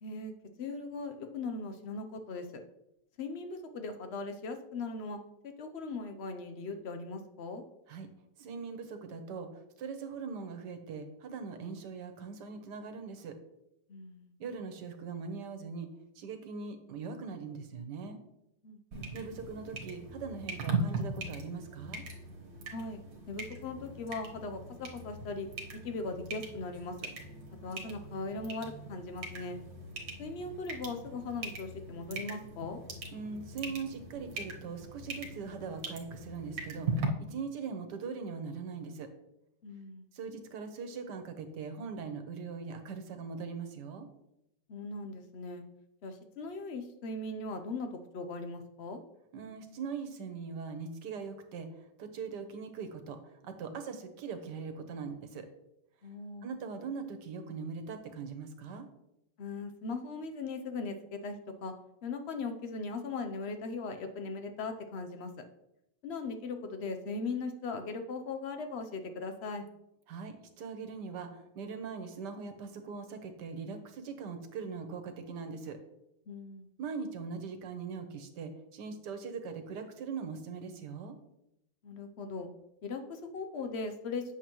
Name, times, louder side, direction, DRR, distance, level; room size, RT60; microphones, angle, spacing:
voice 1, 0.0-0.3 0.6-2.5 3.2-5.2 5.4-7.6 13.9-14.3 18.6-19.1 22.7-23.0 23.3-25.5 25.8-27.0 27.6-29.6 30.2-32.8 39.6-40.1 44.7-45.6 46.0-49.0 56.0-56.5 59.4-61.7 62.0-65.3 66.0-69.7 76.3-76.7 81.8-82.5 82.8-84.2, left 3 dB, 75° left, 7 dB, 0.6 m, -39 dB
voice 2, 8.4-9.5 9.8-13.4 14.4-15.9 16.2-18.2 19.1-22.0 33.1-39.1 40.1-44.1 49.3-51.7 52.0-55.5 56.4-58.9 70.1-75.8 76.8-81.2, right 5 dB, 70° right, 8 dB, 1.5 m, -41 dB
sound 1, 18.9-37.1, right 3 dB, 55° right, 1.4 m, -40 dB
8.2 x 6.8 x 3.0 m, 0.83 s
omnidirectional pair, 2.0 m